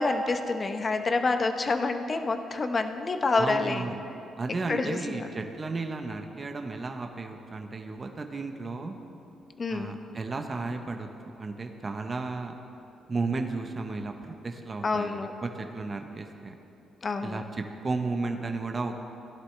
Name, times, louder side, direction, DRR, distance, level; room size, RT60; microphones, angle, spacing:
voice 1, 0.0-3.8 4.7-5.3 9.6-9.9 14.8-15.3 17.0-17.4, left 3 dB, 35° left, 7 dB, 0.8 m, -27 dB
voice 2, 3.4-4.0 4.4-9.0 9.7-12.5 13.1-16.5 17.2-19.0, right 3 dB, 30° right, 4 dB, 0.9 m, -34 dB
16.5 x 11.0 x 3.3 m, 2.9 s
cardioid pair, 90°, 0 cm